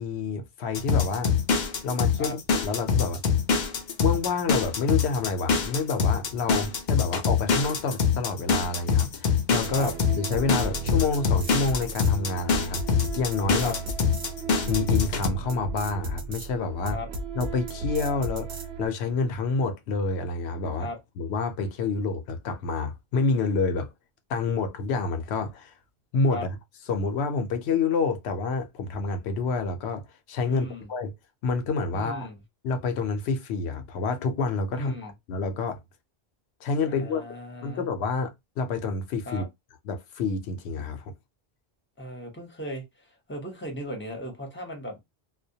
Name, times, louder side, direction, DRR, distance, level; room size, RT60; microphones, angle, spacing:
voice 1, 0.0-1.3 1.8-3.2 4.0-13.8 14.7-17.0 17.4-20.9 21.2-23.9 24.3-25.7 26.1-26.6 26.9-31.1 31.4-32.3 32.6-35.8 36.6-37.3 37.6-39.4 39.9-41.1, left 4 dB, 85° left, 0.8 m, -28 dB
sound 1, 0.7-15.3, left 6 dB, 55° left, 0.5 m, -24 dB
sound 2, 9.6-18.9, right 3 dB, 75° right, 0.8 m, -34 dB
voice 2, 30.5-30.9 31.9-32.3 34.7-35.1 36.9-37.9 39.3-39.4 42.0-42.8 43.3-45.0, left 1 dB, 15° left, 0.7 m, -37 dB
2.2 x 2.1 x 2.7 m
omnidirectional pair, 1.1 m